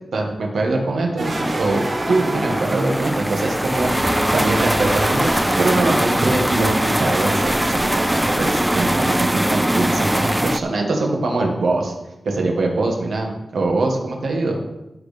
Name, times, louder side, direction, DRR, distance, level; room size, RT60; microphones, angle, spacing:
voice 1, 0.1-3.9 4.3-11.9 12.3-14.6, right 2 dB, 85° right, 1 dB, 1.9 m, -22 dB
sound 1, 1.2-10.6, right 1 dB, 5° right, 0.3 m, -21 dB
sound 2, 1.2-3.1 3.7-10.4, right 2 dB, 55° right, 1.7 m, -30 dB
sound 3, 3.8-9.0, left 1 dB, 40° left, 3.0 m, -33 dB
15.5 x 6.4 x 3.5 m, 0.94 s
wide cardioid pair, 170°, 0 cm